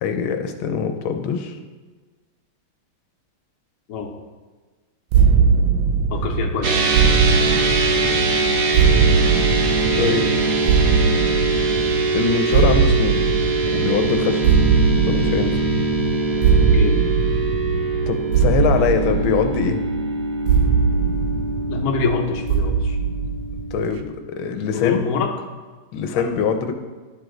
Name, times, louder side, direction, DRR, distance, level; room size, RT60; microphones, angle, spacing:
voice 1, 0.0-1.6 9.9-10.3 12.1-13.2 13.7-14.5 15.1-15.6 18.1-19.8 23.7-25.0 25.9-26.7, left 6 dB, 80° left, 6 dB, 1.4 m, -23 dB
sound 1, 5.1-24.0, right 6 dB, 80° right, 1.3 m, -20 dB
voice 2, 6.1-6.9 16.5-17.0 21.7-23.0 24.7-25.3 26.1-26.2, left 5 dB, 55° left, 2 dB, 1.1 m, -25 dB
sound 2, 6.6-24.0, right 3 dB, 55° right, 1.4 m, -23 dB
11.0 x 4.9 x 3.8 m, 1.4 s
omnidirectional pair, 2.2 m